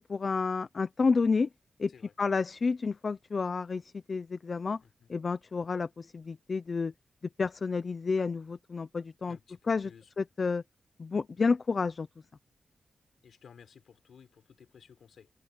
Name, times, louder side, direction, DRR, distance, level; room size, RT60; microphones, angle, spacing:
voice 1, 0.0-1.5 1.8-1.9 2.2-4.8 5.1-6.9 7.4-9.4 9.7-9.9 10.2-10.6 11.0-12.1, left 4 dB, 40° left, 0.6 m, -30 dB
voice 2, 9.2-10.1 13.2-15.3, left 7 dB, 85° left, 4.5 m, -56 dB
wide cardioid pair, 165°, 0 cm